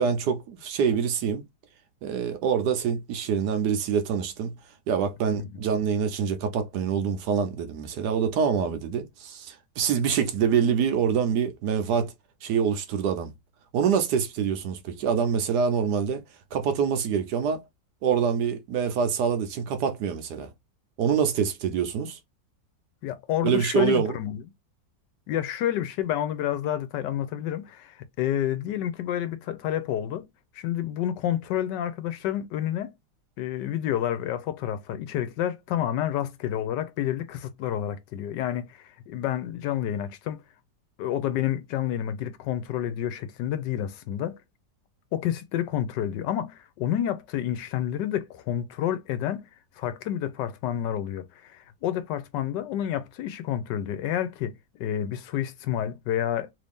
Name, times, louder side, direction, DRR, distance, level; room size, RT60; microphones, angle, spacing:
voice 1, 0.0-1.5 2.0-4.5 4.9-12.1 12.4-13.3 13.7-16.2 16.5-17.6 18.0-20.5 21.0-22.2 23.4-24.1, right 7 dB, 70° right, 1.1 m, -25 dB
voice 2, 23.0-24.4 25.3-30.3 30.5-32.9 33.4-40.4 41.0-44.4 45.1-49.5 49.8-56.5, left 11 dB, 80° left, 1.2 m, -29 dB
3.1 x 2.7 x 3.4 m
omnidirectional pair, 1.9 m